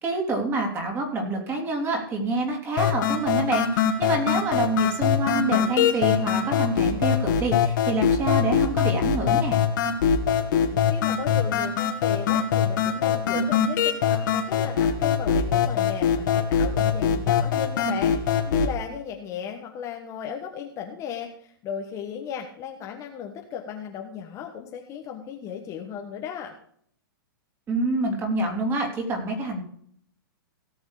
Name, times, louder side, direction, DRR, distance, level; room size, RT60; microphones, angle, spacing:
voice 1, 0.0-9.6 27.7-29.6, right 2 dB, 20° right, 2 dB, 3.1 m, -27 dB
sound 1, 2.8-18.8, left 8 dB, 55° left, 2.2 m, -23 dB
voice 2, 10.7-26.5, left 8 dB, 25° left, 3 dB, 1.3 m, -36 dB
17.5 x 6.4 x 4.9 m, 0.64 s
hypercardioid pair, 145°, 12 cm